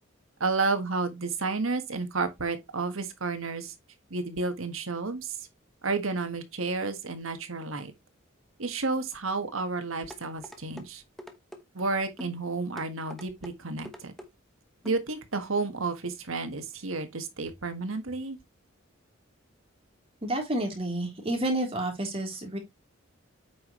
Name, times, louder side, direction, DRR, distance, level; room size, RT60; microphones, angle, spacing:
voice 1, 0.4-3.7 4.1-5.4 5.8-7.9 8.6-11.0 11.7-14.1 14.8-18.4, right 3 dB, 85° right, 1.6 m, -31 dB
sound 1, 10.1-10.9 11.2-11.6 12.2-12.4 12.8-13.5 13.9-14.3 14.9-15.0 15.4-15.5, equal, ahead, 1.1 m, -44 dB
voice 2, 20.2-22.6, right 1 dB, 30° right, 3.4 m, -30 dB
8.6 x 5.9 x 3.1 m
head